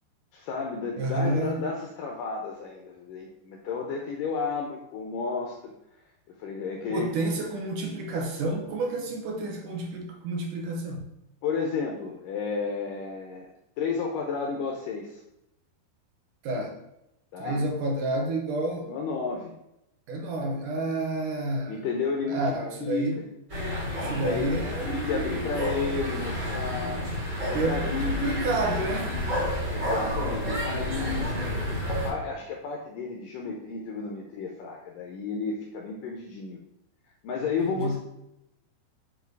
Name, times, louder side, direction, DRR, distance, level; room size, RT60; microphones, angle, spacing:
voice 1, 0.3-5.7 6.3-7.2 11.4-13.5 13.8-15.2 17.3-17.6 18.9-19.6 21.7-22.5 22.8-23.1 24.0-24.5 24.9-27.0 27.4-28.6 29.7-31.4 31.9-36.6 37.2-38.0, left 5 dB, 75° left, 0 dB, 2.1 m, -32 dB
voice 2, 1.0-1.6 6.9-11.1 16.4-16.8 17.4-18.9 20.1-21.9 22.3-23.2 24.0-25.6 27.5-29.2 37.6-38.0, right 2 dB, 70° right, 2 dB, 2.2 m, -30 dB
sound 1, 23.5-32.1, left 1 dB, 20° right, 2.8 m, -30 dB
7.4 x 4.8 x 4.6 m, 0.85 s
omnidirectional pair, 4.5 m